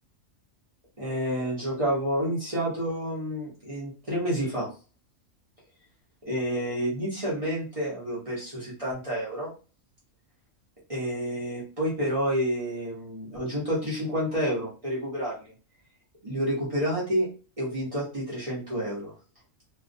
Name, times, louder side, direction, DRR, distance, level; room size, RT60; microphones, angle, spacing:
voice 1, 1.0-4.7 6.2-9.5 10.9-15.5 16.2-17.3 17.6-19.1, equal, 30° right, -6 dB, 0.7 m, -29 dB
2.3 x 2.2 x 2.5 m, 0.34 s
omnidirectional pair, 1.4 m